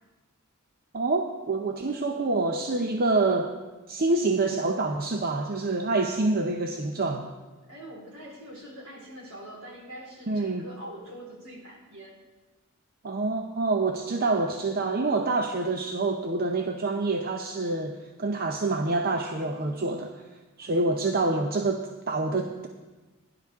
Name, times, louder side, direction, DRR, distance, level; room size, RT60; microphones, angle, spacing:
voice 1, 0.9-3.5 3.9-7.3 10.3-10.6 13.0-20.1 20.6-22.7, right 3 dB, 45° right, 4 dB, 0.7 m, -27 dB
voice 2, 7.6-12.2 20.6-21.4, right 1 dB, 75° right, -4 dB, 4.0 m, -44 dB
17.0 x 11.0 x 3.6 m, 1.2 s
head